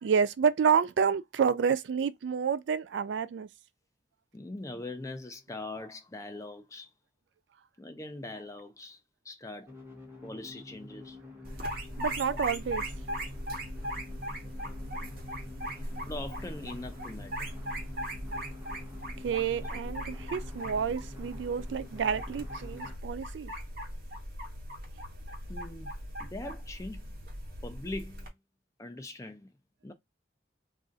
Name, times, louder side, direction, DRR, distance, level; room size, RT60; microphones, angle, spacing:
voice 1, 0.0-3.5 12.0-12.8 19.2-23.5, right 6 dB, 70° right, 0.3 m, -29 dB
voice 2, 4.3-6.9 7.8-9.7 10.2-11.2 15.8-17.5 25.5-27.2 27.6-28.3 28.8-29.6 29.8-29.9, left 2 dB, 15° left, 0.4 m, -42 dB
sound 1, 9.7-23.0, left 2 dB, 15° right, 0.9 m, -47 dB
sound 2, 11.4-28.3, equal, 50° right, 1.0 m, -39 dB
2.5 x 2.4 x 3.8 m
head